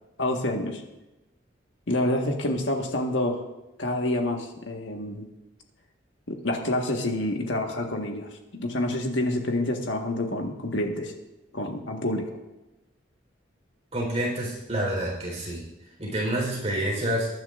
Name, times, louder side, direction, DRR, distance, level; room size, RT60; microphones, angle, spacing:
voice 1, 0.2-0.8 1.9-3.4 3.8-5.3 6.3-11.1 11.5-12.4, left 1 dB, 75° left, 2 dB, 1.6 m, -28 dB
voice 2, 13.9-15.6 16.0-17.3, right 1 dB, 35° right, -2 dB, 4.1 m, -28 dB
22.0 x 10.5 x 2.6 m, 0.98 s
head